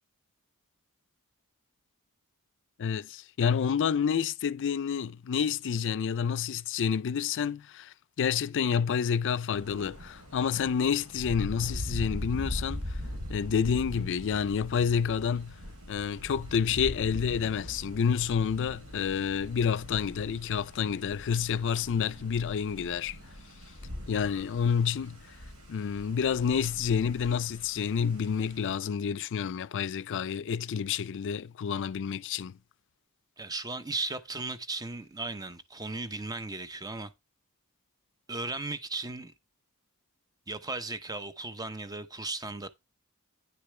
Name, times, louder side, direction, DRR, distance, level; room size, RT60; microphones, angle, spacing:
voice 1, 2.8-13.0 13.3-15.5 15.9-23.2 24.1-25.2 25.7-32.6, left 7 dB, 55° left, 0.4 m, -29 dB
Thunder, 9.6-28.8, left 1 dB, 80° right, 3.8 m, -41 dB
voice 2, 33.4-37.1 38.3-39.3 40.5-42.7, right 3 dB, 15° right, 0.7 m, -36 dB
9.8 x 6.7 x 3.2 m
head